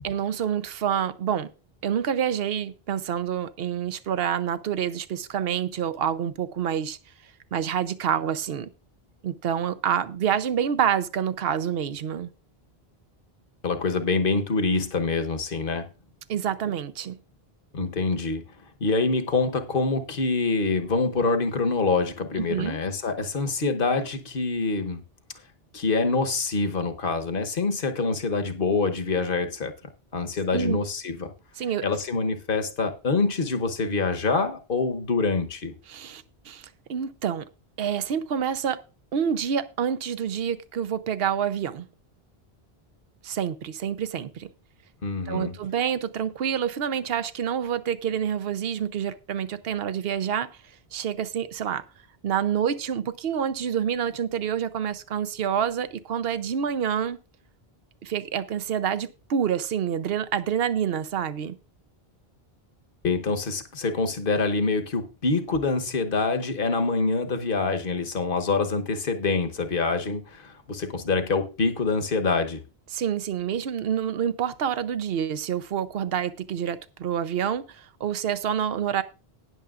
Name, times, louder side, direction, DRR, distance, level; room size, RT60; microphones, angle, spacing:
voice 1, 0.0-1.5 1.8-7.0 7.5-8.7 9.2-12.3 16.3-17.2 22.4-22.8 30.5-30.8 31.6-31.9 35.9-37.4 37.8-38.8 39.1-41.9 43.2-44.5 45.3-50.5 50.9-51.8 52.2-57.2 58.0-61.6 72.9-79.0, right 8 dB, 70° right, 0.9 m, -27 dB
voice 2, 13.6-15.9 17.7-18.4 18.8-25.0 25.7-29.7 30.1-31.3 31.8-35.7 45.0-45.5 63.0-72.6, left 4 dB, 60° left, 1.2 m, -25 dB
19.0 x 6.8 x 2.4 m
omnidirectional pair, 1.0 m